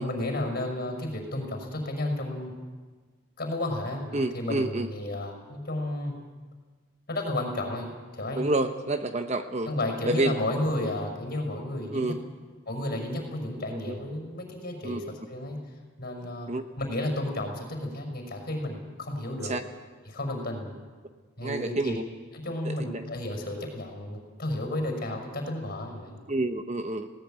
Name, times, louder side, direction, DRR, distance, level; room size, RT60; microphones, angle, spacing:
voice 1, 0.0-2.5 3.4-6.1 7.1-8.5 9.7-12.2 12.7-15.6 16.0-19.5 20.0-20.7 21.4-22.0 22.3-26.2, left 1 dB, 45° left, 2 dB, 5.7 m, -32 dB
voice 2, 4.1-4.9 8.3-9.7 10.1-10.3 11.9-12.2 13.7-14.0 14.8-15.0 16.5-16.6 19.4-19.6 21.4-22.0 22.6-22.7 26.3-27.1, right 2 dB, 30° right, 8 dB, 0.9 m, -28 dB
19.0 x 18.5 x 9.0 m, 1.4 s
head